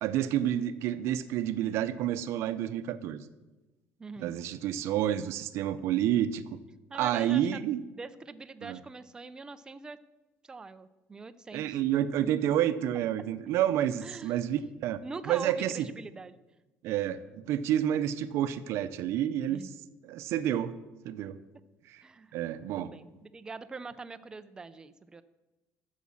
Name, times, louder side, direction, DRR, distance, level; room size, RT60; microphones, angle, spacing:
voice 1, 0.0-3.2 4.2-6.6 7.0-7.8 8.6-8.8 11.5-15.0 15.3-15.9 16.8-19.6 20.0-20.8 21.0-21.4 21.9-22.0 22.3-22.9, right 11 dB, 65° right, 12 dB, 0.7 m, -29 dB
voice 2, 4.0-4.4 6.9-10.0 10.5-11.8 12.2-12.3 14.0-14.6 15.0-16.3 19.5-19.7 22.0-22.4 22.7-25.2, right 4 dB, 15° right, 12 dB, 0.5 m, -43 dB
12.5 x 7.4 x 7.3 m, 1.1 s
cardioid pair, 160°, 5 cm